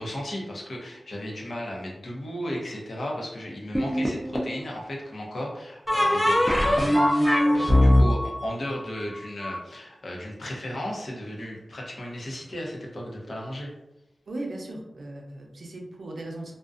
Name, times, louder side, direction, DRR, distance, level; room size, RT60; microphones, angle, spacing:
voice 1, 0.0-13.7, equal, 70° left, -2 dB, 0.7 m, -35 dB
sound 1, 3.7-4.6 5.9-9.5, left 1 dB, 5° left, 0.4 m, -21 dB
voice 2, 14.3-16.6, right 2 dB, 80° right, 0 dB, 0.5 m, -37 dB
2.5 x 2.1 x 2.4 m, 0.92 s
wide cardioid pair, 105°, 0 cm